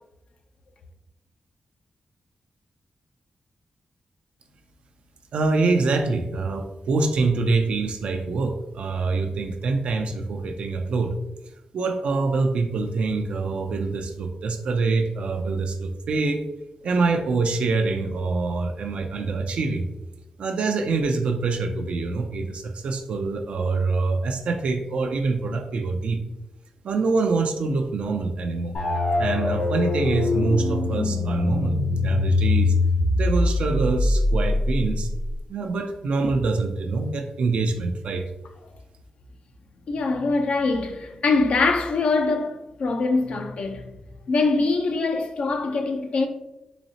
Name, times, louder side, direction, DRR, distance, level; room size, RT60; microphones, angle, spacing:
voice 1, 5.3-11.1 11.7-16.4 16.8-19.9 20.4-26.2 26.8-28.8 29.2-32.7 33.2-35.1 35.5-38.3, right 3 dB, 75° right, 0.4 m, -25 dB
sound 1, 28.7-35.4, left 2 dB, 90° left, 1.0 m, -23 dB
voice 2, 39.9-43.9 44.3-46.3, left 3 dB, 75° left, 0.5 m, -23 dB
4.0 x 3.1 x 2.8 m
cardioid pair, 80°, 2 cm